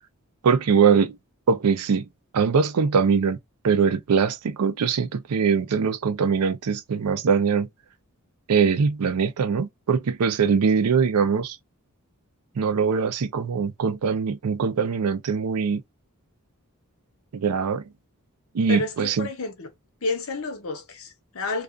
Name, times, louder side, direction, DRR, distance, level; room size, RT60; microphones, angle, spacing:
voice 1, 0.4-1.1 1.5-2.0 2.3-3.4 3.6-7.7 8.5-11.6 12.6-15.8 17.3-17.8 18.5-19.3, right 6 dB, 90° right, 0.5 m, -22 dB
voice 2, 18.7-19.7 20.0-21.6, left 3 dB, 65° left, 0.8 m, -30 dB
2.4 x 2.3 x 2.4 m
head